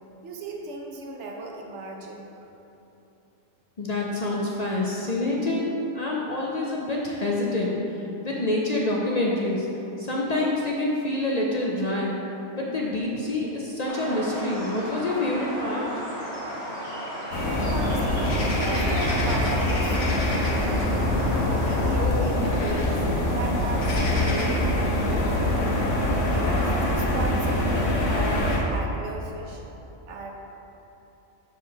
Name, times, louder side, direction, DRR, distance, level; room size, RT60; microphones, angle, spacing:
voice 1, 0.2-2.3 17.6-21.2 21.5-25.6 26.2-29.6 30.1-30.3, right 3 dB, 75° right, 0 dB, 1.1 m, -36 dB
voice 2, 3.8-7.7 8.2-9.7 10.0-12.2 12.5-15.9, left 2 dB, 45° left, -3 dB, 0.6 m, -27 dB
sound 1, 13.9-22.0, equal, 30° right, 1.4 m, -34 dB
sound 2, 17.3-28.6, left 1 dB, 80° left, 1.2 m, -24 dB
4.8 x 4.4 x 5.8 m, 3.0 s
omnidirectional pair, 1.2 m